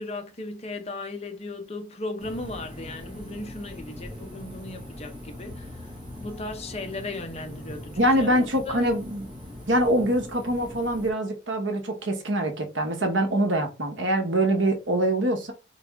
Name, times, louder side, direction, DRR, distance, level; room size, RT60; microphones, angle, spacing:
voice 1, 0.0-8.8, left 2 dB, 35° left, 0.9 m, -37 dB
sound 1, 2.2-11.1, left 1 dB, 25° right, 1.8 m, -41 dB
voice 2, 8.0-9.3 9.7-15.5, right 1 dB, 65° right, 1.1 m, -24 dB
4.1 x 3.4 x 3.6 m
head